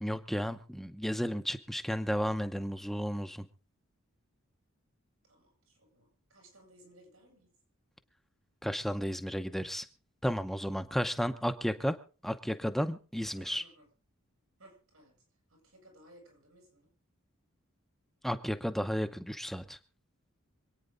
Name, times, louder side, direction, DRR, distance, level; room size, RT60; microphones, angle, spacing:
voice 1, 0.0-3.5 8.6-9.9 10.2-12.0 12.2-13.6 18.2-19.8, equal, ahead, 7 dB, 0.8 m, -33 dB
voice 2, 5.3-7.5 13.3-13.8 14.6-15.2 15.5-16.9, right 1 dB, 90° right, 1 dB, 7.7 m, -60 dB
25.5 x 9.3 x 3.9 m, 0.37 s
head